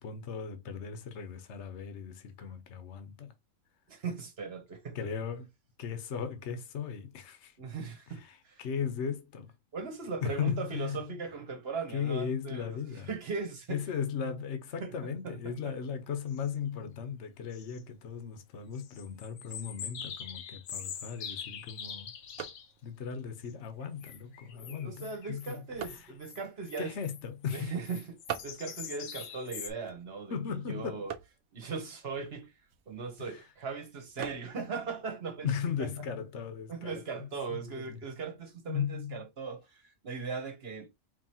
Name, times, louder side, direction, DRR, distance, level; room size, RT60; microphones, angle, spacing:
voice 1, 0.0-3.3 4.9-5.5 5.8-7.5 8.2-9.5 10.2-11.1 11.9-13.1 13.7-22.1 22.8-26.1 26.8-27.8 30.3-31.1 33.2-33.4 35.4-38.0 38.7-39.2, left 7 dB, 60° left, 1.1 m, -37 dB
voice 2, 3.9-5.0 7.6-8.6 9.7-12.8 13.1-13.8 14.8-14.9 15.2-15.7 24.5-26.9 27.5-31.1 31.5-32.5 32.9-35.5 35.8-35.9 36.7-40.9, right 5 dB, 50° right, 1.2 m, -39 dB
sound 1, 15.6-15.7 16.3-16.5 17.5-17.8 18.7-22.7 23.4-23.5 23.9-29.7, left 8 dB, 80° left, 1.2 m, -44 dB
sound 2, 20.9-36.4, right 9 dB, 80° right, 1.1 m, -49 dB
4.8 x 3.2 x 2.8 m
omnidirectional pair, 1.4 m